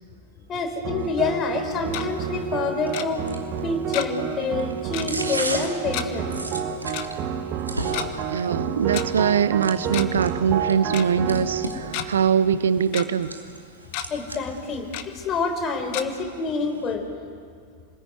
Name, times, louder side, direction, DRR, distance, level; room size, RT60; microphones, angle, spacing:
voice 1, 0.5-3.2 3.6-6.3 14.1-17.1, left 4 dB, 30° left, 5 dB, 4.4 m, -27 dB
sound 1, 0.8-13.3, right 7 dB, 40° right, 1.8 m, -30 dB
sound 2, 1.0-16.9, right 2 dB, 80° right, 2.7 m, -38 dB
Tick-tock, 1.6-2.1 2.9-3.1 3.9-4.3 4.5-4.6 4.9-5.1 5.9-6.1 6.9-7.1 7.8-8.1 8.9-9.0 9.8-10.2 10.5-10.6 10.9-11.1 11.6-12.1 12.5-13.1 13.5-13.6 13.9-14.1 14.9-15.1 15.9-16.0, left 11 dB, 45° left, 1.7 m, -31 dB
voice 2, 8.3-13.4, right 7 dB, 65° right, 14 dB, 0.9 m, -22 dB
28.5 x 20.5 x 9.5 m, 2.2 s
figure-of-eight pair, 90°, 0 cm